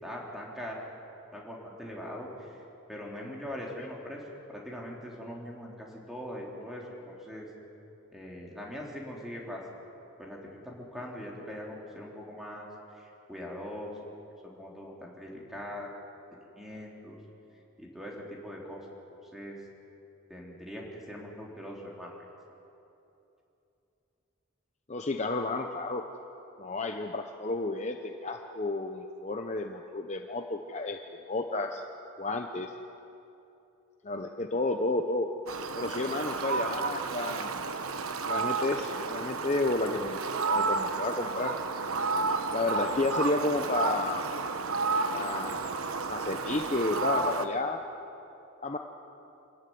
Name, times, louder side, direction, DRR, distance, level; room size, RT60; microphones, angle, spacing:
voice 1, 0.0-0.8 1.3-2.6 2.9-7.5 8.1-9.6 10.2-12.7 12.9-14.0 14.4-15.9 16.5-17.2 17.8-18.9 19.3-19.6 20.3-22.2, equal, ahead, -3 dB, 3.4 m, -41 dB
voice 2, 24.9-26.0 26.6-31.0 31.3-31.8 32.2-32.7 34.0-35.3 35.7-37.7 38.2-41.5 42.5-44.3 45.1-45.7 46.1-47.8 48.6-48.8, left 2 dB, 35° left, 4 dB, 0.8 m, -31 dB
Fowl, 35.5-47.4, right 4 dB, 90° right, 1.2 m, -31 dB
26.0 x 13.5 x 9.5 m, 2.9 s
head